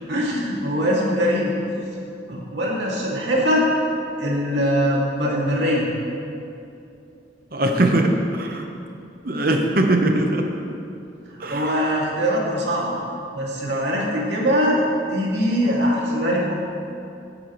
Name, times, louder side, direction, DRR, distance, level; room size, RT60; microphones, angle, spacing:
voice 1, 0.1-1.5 2.3-3.7 4.2-5.9 11.5-12.9 13.3-16.5, equal, 70° right, -4 dB, 2.5 m, -22 dB
voice 2, 7.5-8.7 9.2-10.4 11.4-11.8, right 1 dB, 50° right, 3 dB, 1.1 m, -21 dB
17.5 x 9.4 x 3.2 m, 2.6 s
head